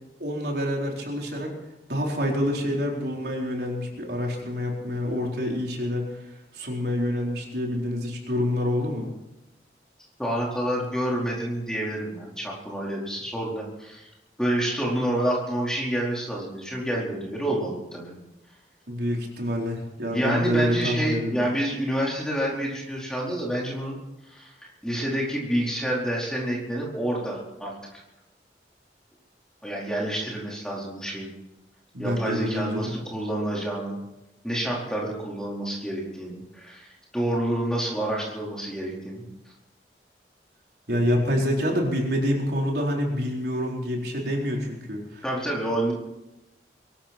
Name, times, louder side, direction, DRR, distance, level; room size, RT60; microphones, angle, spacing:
voice 1, 0.2-1.5 1.9-6.1 6.5-9.1 18.9-21.5 31.9-32.8 40.9-45.2, equal, 65° right, -1 dB, 4.3 m, -27 dB
voice 2, 10.2-14.1 14.4-18.1 20.1-24.0 24.3-27.7 29.6-31.3 32.0-34.0 34.4-36.9 37.1-39.2 45.2-45.9, right 1 dB, 5° left, -4 dB, 4.5 m, -28 dB
23.0 x 13.0 x 4.5 m, 0.95 s
head